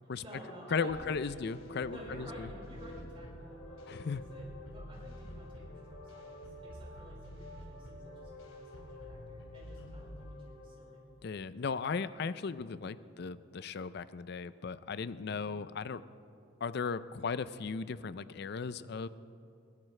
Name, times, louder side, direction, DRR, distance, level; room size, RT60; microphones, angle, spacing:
voice 1, 0.2-1.5 1.9-11.0, equal, 30° right, -4 dB, 4.8 m, -52 dB
voice 2, 0.7-2.5 3.9-4.2 11.2-16.0 16.6-19.1, left 5 dB, 55° left, 15 dB, 0.4 m, -36 dB
sound 1, 0.9-11.0, left 1 dB, 85° left, 2.7 m, -48 dB
21.5 x 16.5 x 3.3 m, 2.5 s
head